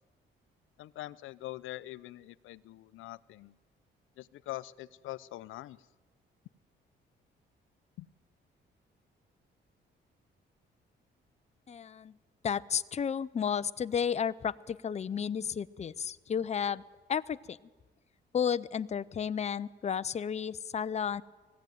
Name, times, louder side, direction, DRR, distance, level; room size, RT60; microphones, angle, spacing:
voice 1, 0.8-3.5 4.2-5.9 8.0-8.1, left 16 dB, 85° left, 17 dB, 0.7 m, -43 dB
voice 2, 11.7-12.1 12.4-16.8 17.1-17.6 18.3-21.2, left 7 dB, 35° left, 14 dB, 0.6 m, -32 dB
19.5 x 15.5 x 9.3 m, 1.3 s
cardioid pair, 90°, 20 cm